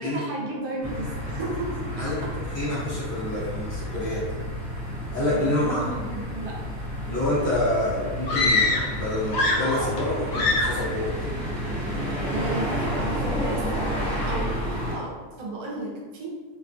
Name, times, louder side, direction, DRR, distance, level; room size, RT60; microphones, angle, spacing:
voice 1, 0.0-2.4 5.3-6.6 12.3-16.3, right 1 dB, 75° right, -3 dB, 1.1 m, -34 dB
sound 1, 0.8-15.0, equal, 45° right, 0.8 m, -31 dB
voice 2, 1.9-2.2 2.5-4.2 5.1-5.8 7.0-11.3, left 1 dB, 40° left, -10 dB, 1.1 m, -27 dB
sound 2, 8.3-9.0 9.3-10.0 10.3-10.9, left 2 dB, 75° left, 0.5 m, -23 dB
2.7 x 2.3 x 2.4 m, 1.4 s
omnidirectional pair, 1.6 m